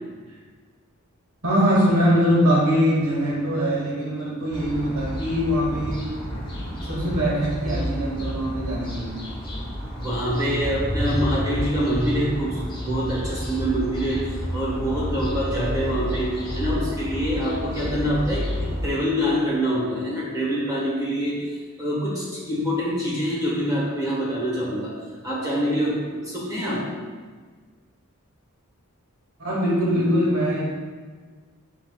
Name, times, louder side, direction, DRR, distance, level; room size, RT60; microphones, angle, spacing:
voice 1, 1.4-6.1 6.6-9.3 29.4-30.7, equal, 70° right, -5 dB, 1.5 m, -22 dB
sound 1, 4.5-18.9, equal, 20° left, 0.9 m, -30 dB
voice 2, 10.0-25.0 25.2-26.9 29.9-30.0, equal, 15° right, -8 dB, 1.4 m, -25 dB
7.8 x 2.8 x 2.4 m, 1.5 s
head